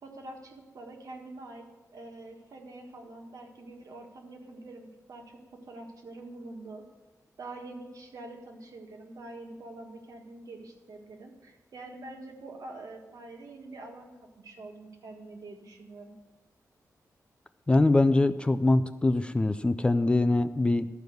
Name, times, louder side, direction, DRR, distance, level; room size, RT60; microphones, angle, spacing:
voice 1, 0.0-1.7 1.9-6.8 7.4-14.1 14.4-16.1, right 2 dB, 65° right, 2 dB, 1.6 m, -45 dB
voice 2, 17.7-20.9, left 2 dB, 15° left, 11 dB, 0.3 m, -23 dB
12.5 x 5.1 x 7.8 m, 1.1 s
wide cardioid pair, 135°, 6 cm